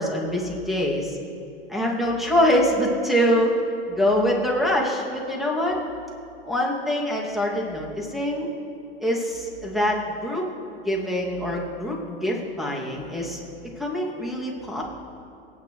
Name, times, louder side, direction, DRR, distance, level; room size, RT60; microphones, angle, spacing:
voice 1, 0.0-1.2 1.7-3.5 3.9-5.8 6.4-8.5 9.0-10.4 10.8-13.4 13.8-14.8, equal, ahead, -3 dB, 2.4 m, -24 dB
24.5 x 9.3 x 3.2 m, 2.6 s
hypercardioid pair, 105°, 29 cm